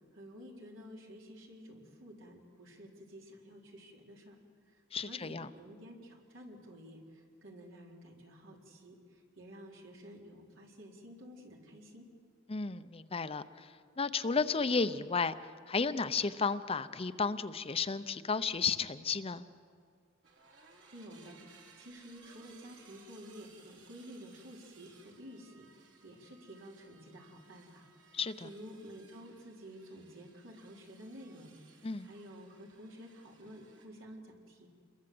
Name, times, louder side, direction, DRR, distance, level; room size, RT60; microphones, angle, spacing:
voice 1, 0.1-4.4 4.7-12.1 20.9-34.7, equal, 85° right, 0 dB, 4.1 m, -51 dB
voice 2, 4.9-5.5 12.5-13.7 14.0-15.3 15.7-19.4 28.1-28.5 31.8-32.1, left 4 dB, 30° left, 12 dB, 0.7 m, -33 dB
sound 1, 20.2-33.8, right 4 dB, 70° right, 3.7 m, -62 dB
28.0 x 22.0 x 7.8 m, 2.1 s
head